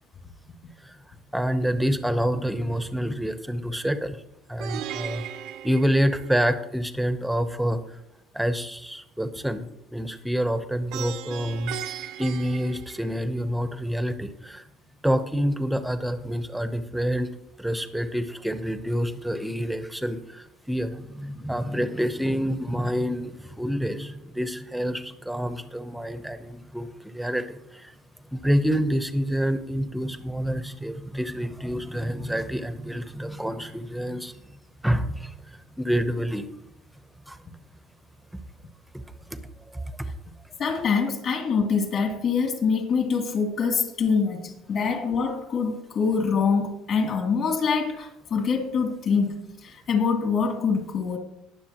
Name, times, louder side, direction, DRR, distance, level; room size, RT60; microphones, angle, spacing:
voice 1, 1.3-4.2 4.5-5.2 5.6-7.8 8.3-9.7 9.9-11.8 12.2-14.6 15.0-17.3 17.6-27.9 28.3-34.3 34.8-36.5 37.3-37.4 38.9-39.0 39.7-40.1, equal, ahead, 9 dB, 0.8 m, -27 dB
Plucked string instrument, 4.6-6.8 10.9-13.5, right 11 dB, 65° right, 0.8 m, -37 dB
voice 2, 40.6-49.3 49.6-51.2, left 5 dB, 45° left, 2 dB, 2.7 m, -25 dB
20.0 x 7.1 x 3.0 m, 0.82 s
cardioid pair, 145°, 0 cm